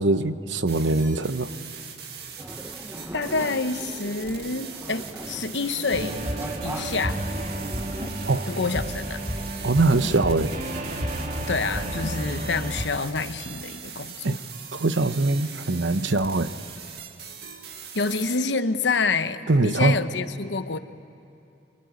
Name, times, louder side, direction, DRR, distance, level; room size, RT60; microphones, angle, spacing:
voice 1, 0.0-1.5 8.3-8.5 9.6-10.5 14.2-14.4 14.7-16.5 19.5-20.0, right 2 dB, 90° right, 11 dB, 1.0 m, -22 dB
sound 1, 0.7-18.4, right 7 dB, 60° right, 2.1 m, -41 dB
sound 2, 2.4-8.1, equal, 10° right, 0.9 m, -39 dB
voice 2, 3.1-6.2 6.6-7.2 8.5-9.2 11.5-14.4 17.9-20.8, left 4 dB, 75° left, 10 dB, 1.0 m, -27 dB
sound 3, 5.9-12.9, right 1 dB, 45° right, 2.1 m, -31 dB
24.5 x 24.0 x 9.6 m, 2.8 s
head